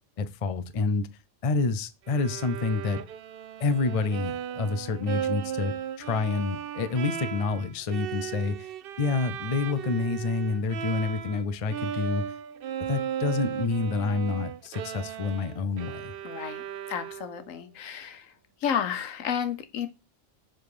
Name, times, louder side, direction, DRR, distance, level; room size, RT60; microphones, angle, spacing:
voice 1, 0.2-1.1 1.4-3.0 3.6-8.7 9.0-12.2 12.8-16.1, left 4 dB, 45° left, 0.4 m, -28 dB
Bowed string instrument, 2.1-11.4 11.7-17.5, right 9 dB, 60° right, 0.6 m, -36 dB
voice 2, 16.2-16.6 16.9-18.3 18.6-19.9, left 8 dB, 85° left, 1.2 m, -31 dB
6.9 x 3.7 x 4.8 m
omnidirectional pair, 1.3 m